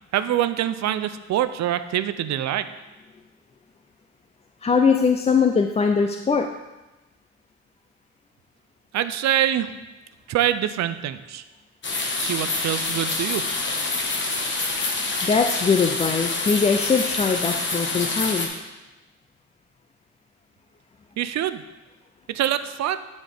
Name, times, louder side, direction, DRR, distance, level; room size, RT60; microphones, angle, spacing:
voice 1, 0.1-2.7 8.9-9.7 10.3-11.4 12.2-13.4 21.2-21.6 22.3-23.0, right 11 dB, 65° right, 12 dB, 0.5 m, -24 dB
voice 2, 4.6-6.5 15.2-18.5, left 5 dB, 20° left, 4 dB, 0.4 m, -21 dB
sound 1, 11.8-18.5, left 3 dB, 40° left, 1.3 m, -26 dB
12.0 x 4.1 x 3.5 m, 1.1 s
cardioid pair, 90°, 30 cm